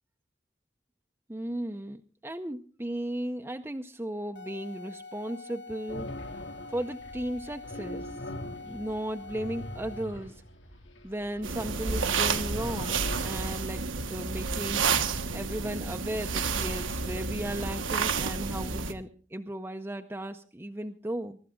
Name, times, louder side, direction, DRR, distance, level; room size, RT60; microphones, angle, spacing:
voice 1, 1.3-6.1 6.7-10.4 11.0-14.9 15.3-21.4, right 1 dB, 10° right, 5 dB, 0.6 m, -36 dB
sound 1, 4.3-10.2, left 4 dB, 60° left, 3.0 m, -46 dB
sound 2, 5.9-13.6, left 1 dB, 85° left, 4.1 m, -42 dB
sound 3, 11.4-18.9, right 5 dB, 85° right, 1.5 m, -30 dB
23.5 x 12.5 x 3.7 m, 0.39 s
head